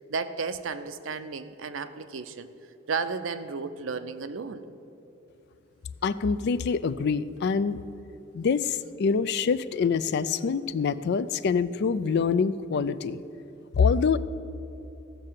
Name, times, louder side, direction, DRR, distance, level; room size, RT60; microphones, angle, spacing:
voice 1, 0.0-2.5 2.9-4.6, right 4 dB, 85° right, 11 dB, 0.6 m, -33 dB
voice 2, 6.0-7.8 8.3-13.2 13.7-14.2, left 5 dB, 60° left, 16 dB, 0.4 m, -25 dB
15.0 x 6.5 x 7.5 m, 2.8 s
head